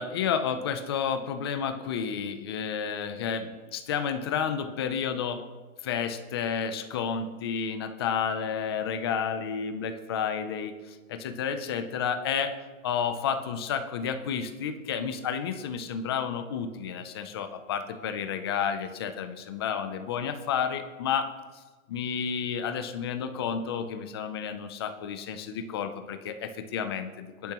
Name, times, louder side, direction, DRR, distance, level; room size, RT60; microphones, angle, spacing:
voice 1, 0.0-5.4 5.8-12.5 12.8-21.3 21.9-27.5, left 7 dB, 20° left, 9 dB, 0.4 m, -31 dB
21.5 x 10.5 x 3.0 m, 1.3 s
hypercardioid pair, 160°, 41 cm